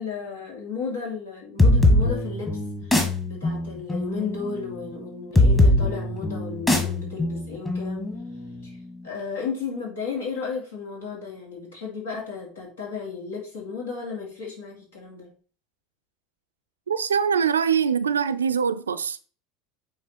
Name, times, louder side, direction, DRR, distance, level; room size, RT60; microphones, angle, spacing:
voice 1, 0.0-8.1 8.6-8.8 9.0-15.3, left 5 dB, 70° left, 2.8 m, -34 dB
sound 1, 1.6-9.0, left 1 dB, 20° left, 1.8 m, -22 dB
voice 2, 16.9-19.2, right 7 dB, 75° right, 0.4 m, -23 dB
8.8 x 3.4 x 4.4 m
figure-of-eight pair, 75°, 0 cm